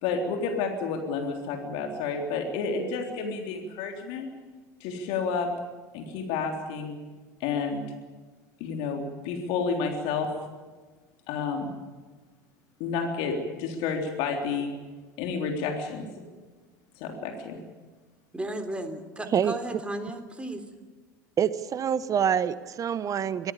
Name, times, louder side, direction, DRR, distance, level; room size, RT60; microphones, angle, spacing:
voice 1, 0.0-4.3 4.8-5.5 5.9-7.0 7.4-7.8 8.6-10.3 11.3-11.7 12.8-14.7 15.2-16.1 17.0-17.6, left 5 dB, 55° left, 3 dB, 3.6 m, -30 dB
voice 2, 18.3-20.6, right 1 dB, 10° right, 7 dB, 3.6 m, -34 dB
voice 3, 21.4-23.5, right 8 dB, 35° right, 16 dB, 1.2 m, -26 dB
24.0 x 18.0 x 8.7 m, 1.3 s
figure-of-eight pair, 75°, 10 cm